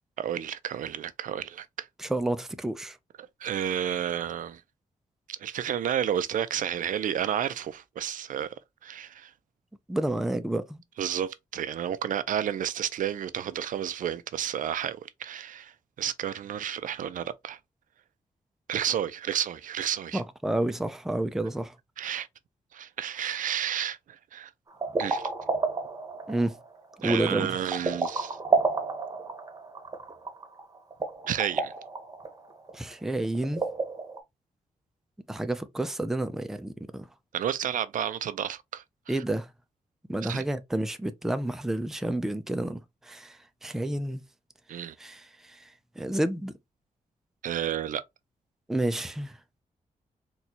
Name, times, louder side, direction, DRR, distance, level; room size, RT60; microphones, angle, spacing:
voice 1, 0.2-1.9 3.4-4.6 5.3-8.5 8.8-9.3 11.0-17.6 18.7-20.2 22.0-22.3 22.7-24.5 25.0-25.3 27.0-28.4 31.3-31.7 37.3-39.2 40.2-40.4 44.7-44.9 47.4-48.0, right 9 dB, 70° right, 0.4 m, -31 dB
voice 2, 2.0-3.0 9.9-10.8 20.1-21.8 26.3-26.6 27.0-27.6 32.7-33.6 35.3-37.1 39.1-39.5 40.1-44.2 45.0-46.5 48.7-49.4, right 1 dB, 5° right, 0.3 m, -30 dB
sound 1, 24.7-34.2, right 3 dB, 25° right, 0.8 m, -31 dB
4.1 x 2.3 x 2.8 m
wide cardioid pair, 135°, 14 cm